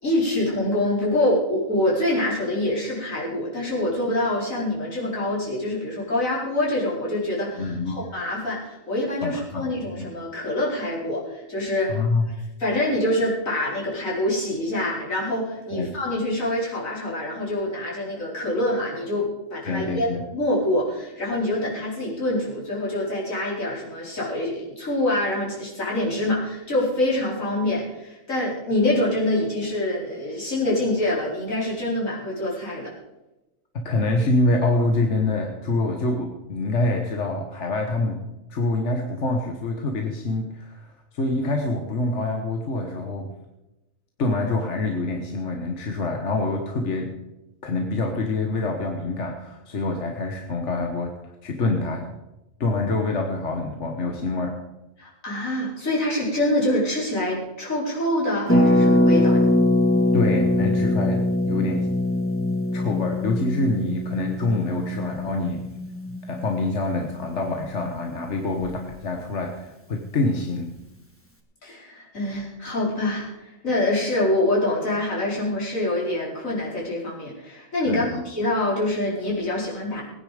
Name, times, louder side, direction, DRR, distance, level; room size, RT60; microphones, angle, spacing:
voice 1, 0.0-12.0 12.6-32.9 55.0-59.5 71.6-80.0, left 1 dB, 85° left, -5 dB, 4.8 m, -25 dB
voice 2, 7.6-8.0 9.2-10.1 11.9-12.3 15.7-15.9 19.6-20.2 33.7-38.2 38.5-40.9 41.1-43.3 44.2-47.1 47.6-52.1 52.6-54.6 60.1-61.9 62.7-65.7 66.3-70.7 77.9-78.2, left 2 dB, 60° left, 3 dB, 1.6 m, -26 dB
Harp, 58.5-68.1 68.4-68.5 68.6-68.9, left 1 dB, 10° left, 1.6 m, -22 dB
19.0 x 9.9 x 5.0 m, 0.97 s
omnidirectional pair, 1.4 m